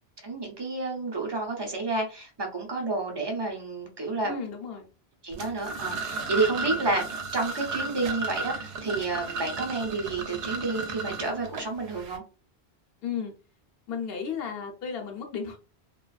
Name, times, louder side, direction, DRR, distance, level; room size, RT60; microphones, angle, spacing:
voice 1, 0.2-4.4 5.2-12.2, right 3 dB, 35° right, 1 dB, 0.5 m, -30 dB
voice 2, 4.2-4.9 13.0-13.3 13.9-15.6, left 6 dB, 65° left, 3 dB, 0.8 m, -34 dB
sound 1, 5.3-12.2, right 4 dB, 75° right, 0.8 m, -34 dB
2.4 x 2.3 x 2.3 m, 0.34 s
omnidirectional pair, 1.1 m